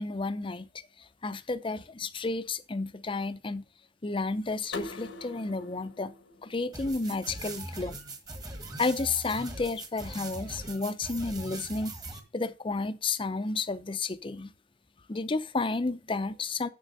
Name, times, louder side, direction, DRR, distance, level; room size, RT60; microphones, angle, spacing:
voice 1, 0.0-3.6 4.0-6.1 6.4-8.0 8.8-11.9 12.3-14.5 15.1-16.7, left 3 dB, 30° left, 0.6 m, -32 dB
sound 1, 4.7-7.5, left 3 dB, 85° left, 1.2 m, -43 dB
sound 2, 6.7-12.2, right 2 dB, 20° right, 1.5 m, -40 dB
7.4 x 6.1 x 6.6 m
head